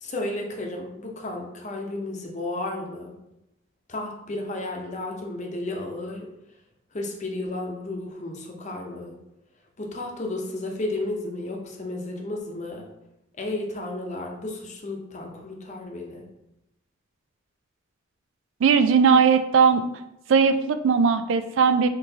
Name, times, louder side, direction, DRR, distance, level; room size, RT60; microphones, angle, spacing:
voice 1, 0.0-3.2 3.9-6.3 6.9-9.1 9.8-12.9 13.4-16.2, left 2 dB, 35° left, 1 dB, 0.8 m, -33 dB
voice 2, 18.6-19.8 20.3-21.9, right 6 dB, 65° right, 10 dB, 0.4 m, -18 dB
5.8 x 3.0 x 2.8 m, 0.87 s
head